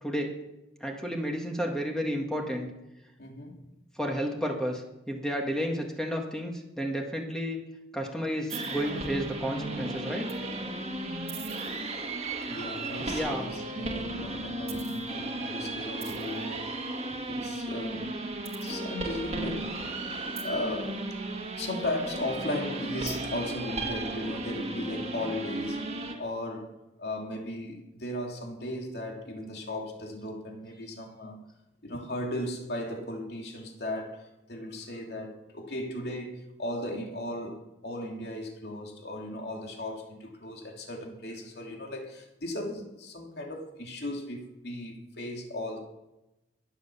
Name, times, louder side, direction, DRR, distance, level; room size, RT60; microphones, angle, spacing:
voice 1, 0.0-0.3 0.8-2.7 4.0-7.6 7.9-10.3 13.1-13.5, equal, 5° left, 1.7 m, -31 dB
voice 2, 3.2-3.6 12.5-16.7 17.1-18.1 18.6-19.8 20.4-21.1 21.6-31.5 31.8-45.8, left 1 dB, 65° left, 2.7 m, -36 dB
sound 1, 8.5-26.1, right 2 dB, 35° right, 1.9 m, -35 dB
22.0 x 7.9 x 7.0 m
head